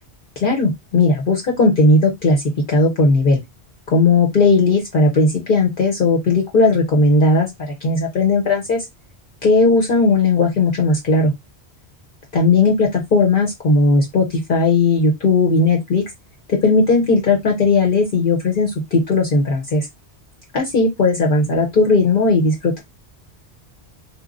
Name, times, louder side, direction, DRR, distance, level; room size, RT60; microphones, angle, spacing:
voice 1, 0.4-2.4 2.7-3.4 3.9-8.8 9.4-11.3 12.3-16.0 16.5-19.9 20.5-22.8, left 3 dB, 55° left, 0.8 m, -16 dB
3.0 x 2.1 x 2.4 m
omnidirectional pair, 1.1 m